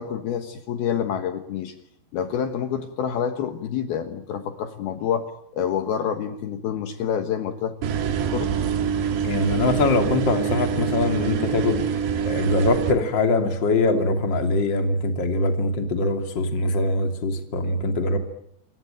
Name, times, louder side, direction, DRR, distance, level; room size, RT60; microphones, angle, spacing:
voice 1, 0.0-1.7 2.1-7.7 8.3-8.5, left 8 dB, 65° left, 8 dB, 3.1 m, -27 dB
sound 1, 7.8-12.9, right 7 dB, 75° right, 4.2 m, -25 dB
voice 2, 9.2-11.8 12.2-18.2, left 2 dB, 30° left, 5 dB, 2.9 m, -23 dB
28.5 x 22.5 x 9.2 m, 0.70 s
omnidirectional pair, 5.0 m